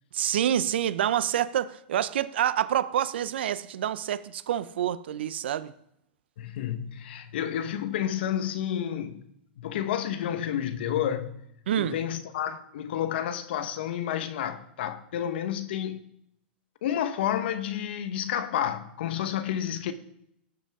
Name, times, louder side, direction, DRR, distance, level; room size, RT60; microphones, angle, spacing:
voice 1, 0.1-5.7 11.7-12.0, right 10 dB, 75° right, 0.7 m, -27 dB
voice 2, 6.4-9.2 9.6-11.4 11.8-16.0 16.8-19.9, left 10 dB, 70° left, 1.2 m, -30 dB
19.0 x 7.7 x 3.7 m
hypercardioid pair, 115°, 6 cm